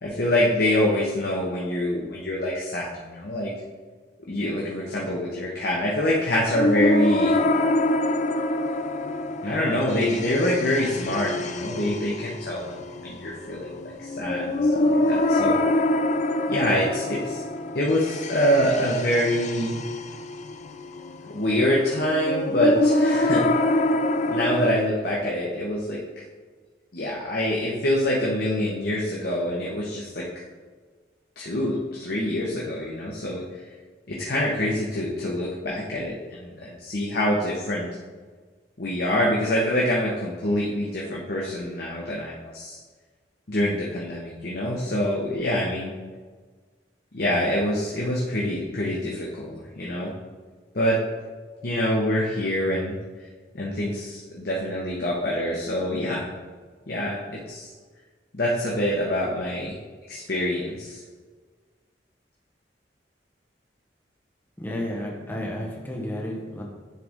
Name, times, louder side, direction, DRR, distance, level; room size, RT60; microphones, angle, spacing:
voice 1, 0.0-3.5 4.3-7.4 9.4-13.7 14.0-15.6 16.5-17.4 17.7-19.8 21.3-23.8 24.3-26.0 26.9-30.4 31.4-33.4 34.1-37.9 38.8-42.8 43.5-45.9 47.1-50.1 50.7-51.0 51.6-53.0 53.5-56.3 56.9-57.7 58.3-59.8 60.1-61.0, left 1 dB, 60° left, -4 dB, 1.0 m, -25 dB
sound 1, 6.5-24.7, left 1 dB, 40° left, 0.5 m, -25 dB
voice 2, 64.6-66.6, left 1 dB, 10° left, -2 dB, 1.0 m, -32 dB
10.0 x 3.9 x 3.6 m, 1.4 s
head